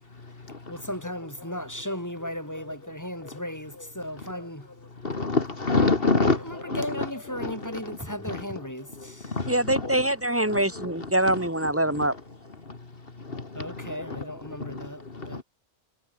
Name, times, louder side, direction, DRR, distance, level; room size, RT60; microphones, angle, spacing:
voice 1, 0.7-4.7 6.1-9.4 13.5-15.4, equal, 15° left, 7.9 m, -36 dB
voice 2, 5.0-6.4 6.7-7.1 7.4-7.5 8.3-8.4, left 3 dB, 60° left, 2.4 m, -23 dB
voice 3, 9.5-12.1, right 1 dB, 10° right, 3.7 m, -24 dB
omnidirectional pair, 1.1 m